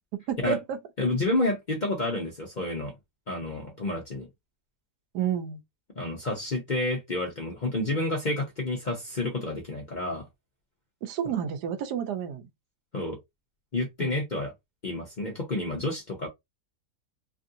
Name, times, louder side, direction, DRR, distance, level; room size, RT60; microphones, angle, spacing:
voice 1, 0.3-0.8 5.1-5.6 11.0-12.4 14.0-14.2, right 8 dB, 85° right, 1.2 m, -30 dB
voice 2, 1.0-2.9 3.3-4.3 6.0-10.3 12.9-13.2 13.7-14.5 14.8-16.3, left 2 dB, 45° left, 0.6 m, -29 dB
3.1 x 2.5 x 2.6 m
omnidirectional pair, 1.7 m